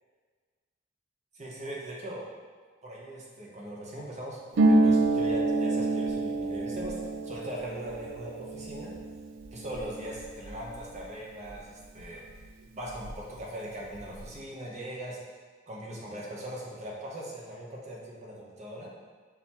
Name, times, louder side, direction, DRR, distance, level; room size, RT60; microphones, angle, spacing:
voice 1, 1.3-2.3 2.8-8.9 9.5-12.2 12.7-15.2 15.7-18.9, right 1 dB, 35° right, -4 dB, 0.9 m, -40 dB
Harp, 4.5-12.0 12.3-13.4 13.7-14.3, right 2 dB, 75° right, 0.4 m, -28 dB
4.0 x 2.9 x 4.2 m, 1.5 s
head